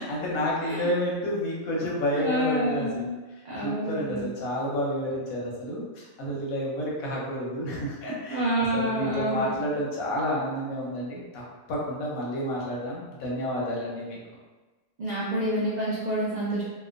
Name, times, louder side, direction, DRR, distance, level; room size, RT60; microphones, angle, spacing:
voice 1, 0.0-3.1 3.6-11.4 11.7-14.2, equal, 85° left, -4 dB, 1.2 m, -30 dB
voice 2, 2.1-3.2 3.4-4.2 8.3-9.5 15.0-16.6, equal, 90° right, -7 dB, 0.3 m, -28 dB
2.9 x 2.2 x 2.4 m, 1.2 s
omnidirectional pair, 1.4 m